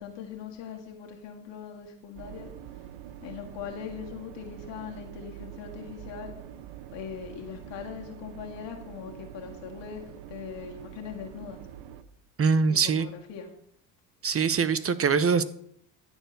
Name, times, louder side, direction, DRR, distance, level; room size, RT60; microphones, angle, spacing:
voice 1, 0.0-2.5 3.2-6.3 6.9-11.6 12.7-13.5, left 7 dB, 60° left, 2 dB, 1.9 m, -41 dB
sound 1, 2.1-12.0, right 11 dB, 70° right, 1.0 m, -45 dB
voice 2, 12.4-13.1 14.2-15.4, right 5 dB, 30° right, 14 dB, 0.7 m, -23 dB
13.0 x 4.5 x 6.8 m, 0.68 s
supercardioid pair, 75°, 48 cm